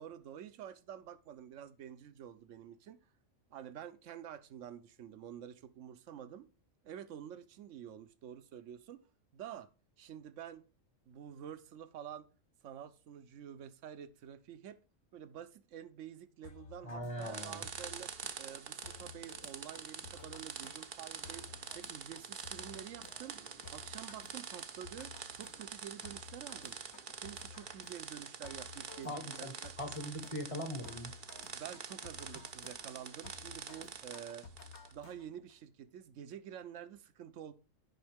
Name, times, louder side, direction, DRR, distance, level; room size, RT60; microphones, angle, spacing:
voice 1, 0.0-3.0 3.5-6.5 6.8-9.0 9.3-9.7 10.0-10.6 11.1-12.3 12.6-14.8 15.1-18.1 18.4-23.4 23.7-26.8 27.2-29.7 31.5-34.5 34.9-37.5, right 9 dB, 70° right, 1.0 m, -49 dB
sound 1, 16.4-35.5, left 5 dB, 60° left, 1.2 m, -55 dB
voice 2, 16.8-17.7 29.0-31.1, equal, 25° left, 1.1 m, -41 dB
sound 2, 17.2-34.9, right 6 dB, 45° right, 0.8 m, -46 dB
9.3 x 5.3 x 3.4 m
omnidirectional pair, 1.4 m